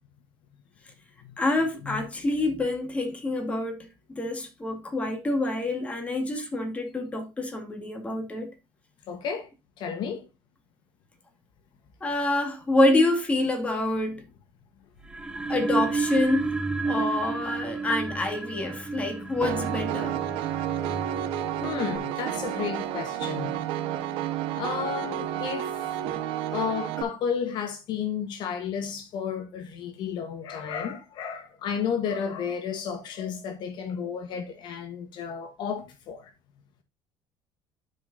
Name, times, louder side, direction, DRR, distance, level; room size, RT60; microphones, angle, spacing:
voice 1, 1.4-8.5 12.0-14.2 15.5-16.6 16.8-20.2, left 2 dB, 15° left, 2.2 m, -27 dB
voice 2, 9.1-9.5 9.8-10.2 15.3-15.4 21.6-23.5 24.5-25.8 26.5-36.3, left 7 dB, 60° left, 1.2 m, -32 dB
sound 1, 15.0-22.0, right 4 dB, 10° right, 0.8 m, -32 dB
Piano, 19.4-27.0, right 11 dB, 85° right, 1.3 m, -31 dB
12.0 x 5.2 x 2.7 m
cardioid pair, 150°, 9 cm